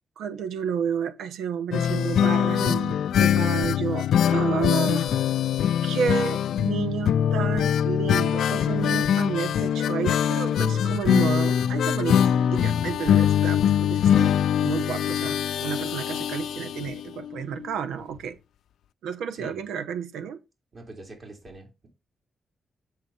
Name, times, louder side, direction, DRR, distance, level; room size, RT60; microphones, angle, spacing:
voice 1, 0.2-5.3 5.8-12.2 12.5-18.4 19.0-20.4, right 7 dB, 85° right, 0.9 m, -31 dB
sound 1, 1.7-17.4 17.6-17.7 18.0-18.1, left 9 dB, 80° left, 0.3 m, -23 dB
voice 2, 20.7-21.9, right 2 dB, 50° right, 3.3 m, -44 dB
7.8 x 5.7 x 4.2 m
cardioid pair, 60°, 0 cm